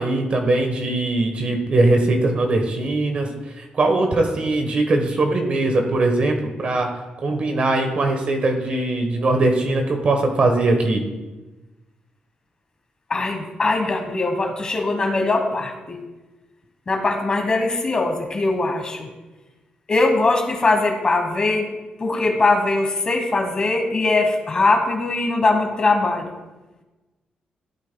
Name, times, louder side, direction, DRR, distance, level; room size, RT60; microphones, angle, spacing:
voice 1, 0.0-3.3 3.7-6.9 7.2-11.0, right 2 dB, 45° right, 4 dB, 1.1 m, -20 dB
voice 2, 13.1-16.0 16.9-19.1 19.9-21.7 22.0-26.3, left 3 dB, 30° left, 4 dB, 1.2 m, -21 dB
14.5 x 8.4 x 2.2 m, 1.1 s
cardioid pair, 125°, 3 cm